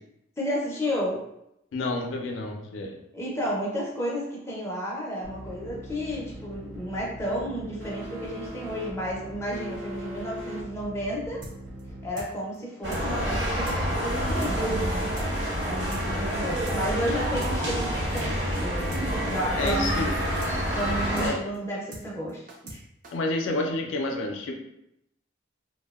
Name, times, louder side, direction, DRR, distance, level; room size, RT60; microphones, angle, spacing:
voice 1, 0.4-1.2 3.1-11.4 12.0-18.9 19.3-20.0 20.7-22.4 22.7-22.8, equal, 15° left, -5 dB, 0.5 m, -32 dB
voice 2, 1.7-3.0 19.6-20.2 21.2-21.4 23.1-24.6, left 2 dB, 80° left, 2 dB, 0.4 m, -29 dB
sound 1, 5.2-12.1, equal, 85° right, 0.7 m, -40 dB
sound 2, 11.4-11.5 11.8-11.9 12.2-12.3 12.5-12.6 12.9-13.0 13.3-13.4 13.7-13.8 14.0-14.1 14.4-14.5 14.8-14.9 15.2-15.3 15.5-15.6 15.9-16.0 16.3-16.8 17.0-17.1 17.4-17.5 17.8-17.9 18.2-18.3 18.5-18.6 18.9-19.0 19.3-19.4 19.7-19.8 20.0-20.1 20.4-20.5 20.8-20.9 21.2-21.3 21.5-21.6 21.9-22.0 22.3-22.8 23.0-23.1, right 2 dB, 40° right, 0.4 m, -41 dB
sound 3, 12.8-21.3, equal, 65° right, 1.0 m, -28 dB
2.6 x 2.1 x 2.2 m, 0.80 s
head